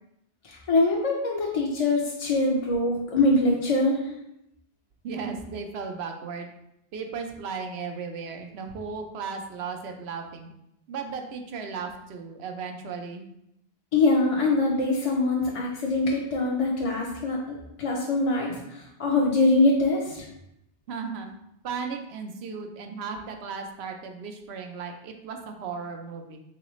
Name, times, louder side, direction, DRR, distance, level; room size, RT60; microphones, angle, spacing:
voice 1, 0.4-4.0 13.9-17.4 17.8-20.3, left 2 dB, 45° left, -2 dB, 0.5 m, -23 dB
voice 2, 5.0-6.5 6.9-10.5 10.9-13.2 20.9-21.3 21.6-26.4, right 5 dB, 85° right, 4 dB, 0.8 m, -35 dB
3.8 x 3.2 x 3.0 m, 0.81 s
omnidirectional pair, 1.0 m